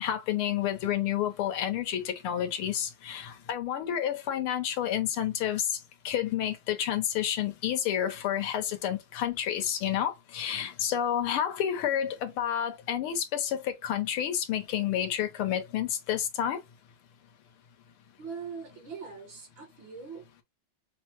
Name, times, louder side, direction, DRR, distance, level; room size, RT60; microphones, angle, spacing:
voice 1, 0.0-5.7 6.1-16.6, left 10 dB, 85° left, 1.8 m, -30 dB
voice 2, 18.2-20.4, right 5 dB, 65° right, 2.7 m, -42 dB
6.2 x 2.2 x 2.9 m
omnidirectional pair, 2.3 m